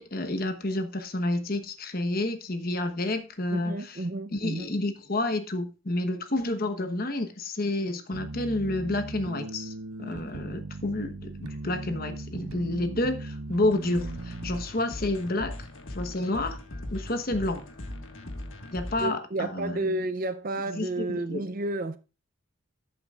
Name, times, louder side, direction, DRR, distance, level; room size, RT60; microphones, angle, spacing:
voice 1, 0.0-4.0 4.3-9.7 10.0-16.6 16.9-17.6 18.7-19.7 20.7-21.5, left 2 dB, 40° left, 1.1 m, -30 dB
voice 2, 3.5-4.7 19.0-22.0, right 2 dB, 40° right, 0.5 m, -31 dB
sound 1, 8.1-14.6, right 2 dB, 85° right, 0.7 m, -38 dB
sound 2, 13.7-19.1, left 1 dB, 65° left, 1.6 m, -39 dB
14.0 x 7.8 x 2.4 m
head